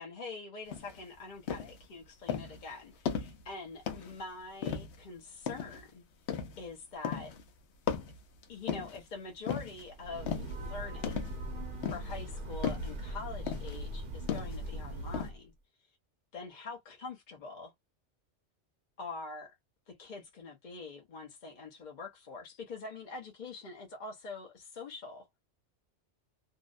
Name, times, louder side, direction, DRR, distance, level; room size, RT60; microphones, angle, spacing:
voice 1, 0.0-6.0 6.6-7.3 8.5-11.3 11.9-15.5 16.3-17.7 19.0-19.5 19.9-25.3, left 3 dB, 45° left, 0.8 m, -44 dB
sound 1, 0.7-1.0 1.5-1.8 2.3-2.6 3.1-3.4 3.9-4.2 4.6-5.0 5.5-5.8 6.3-6.6 7.0-7.4 7.9-9.0 9.5-9.8 10.3-10.6 11.0-11.4 11.8-12.2 12.6-13.0 13.5-13.8 14.3-14.7 15.1-15.3, left 7 dB, 70° left, 0.9 m, -36 dB
Breathing / Train, 9.9-15.4, right 1 dB, 50° right, 0.8 m, -40 dB
2.7 x 2.1 x 2.4 m
omnidirectional pair, 1.2 m